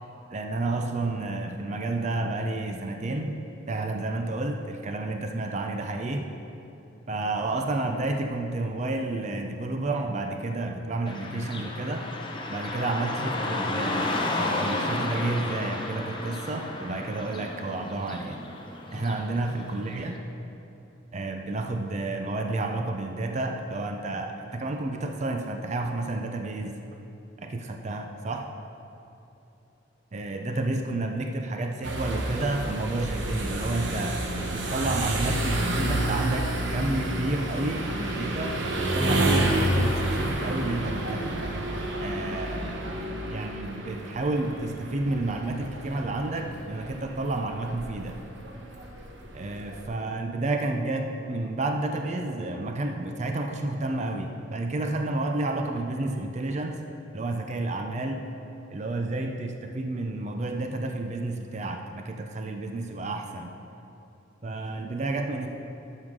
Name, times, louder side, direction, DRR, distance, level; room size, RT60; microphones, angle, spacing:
voice 1, 0.3-3.3 3.7-6.2 7.1-12.1 12.5-14.1 14.4-18.4 18.9-20.2 21.1-26.7 27.4-28.5 30.1-34.2 34.5-41.5 42.0-42.8 43.3-48.2 49.3-56.8 57.1-58.2 58.7-63.5 64.4-65.5, right 2 dB, 35° right, 4 dB, 0.5 m, -30 dB
Car passing by / Traffic noise roadway noise, 11.1-20.1, left 2 dB, 25° left, 0.8 m, -32 dB
sound 1, 31.8-49.9, right 1 dB, 65° right, 1.0 m, -30 dB
12.0 x 6.4 x 3.7 m, 2.9 s
head